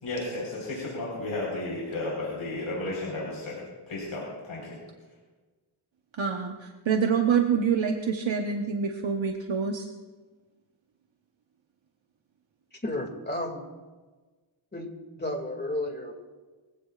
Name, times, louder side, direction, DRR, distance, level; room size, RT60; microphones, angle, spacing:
voice 1, 0.0-4.8, left 2 dB, 80° left, -5 dB, 4.8 m, -33 dB
voice 2, 6.1-9.9, right 6 dB, 65° right, 3 dB, 1.2 m, -26 dB
voice 3, 12.7-13.7 14.7-14.9 15.2-16.1, left 1 dB, 20° left, 3 dB, 2.5 m, -32 dB
23.0 x 16.0 x 2.5 m, 1.3 s
wide cardioid pair, 85°, 50 cm